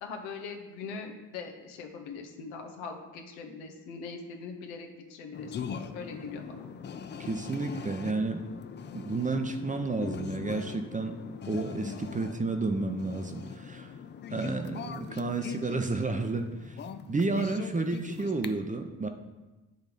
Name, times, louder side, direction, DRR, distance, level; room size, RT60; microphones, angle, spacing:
voice 1, 0.0-6.7, left 4 dB, 80° left, 4 dB, 0.9 m, -41 dB
sound 1, 5.3-18.5, left 7 dB, 25° left, 0.3 m, -42 dB
voice 2, 7.2-8.4 8.9-11.2 11.5-13.9 14.3-16.8 17.1-19.1, right 3 dB, 20° right, 6 dB, 0.6 m, -31 dB
7.7 x 3.0 x 5.2 m, 1.1 s
hypercardioid pair, 50°, 45 cm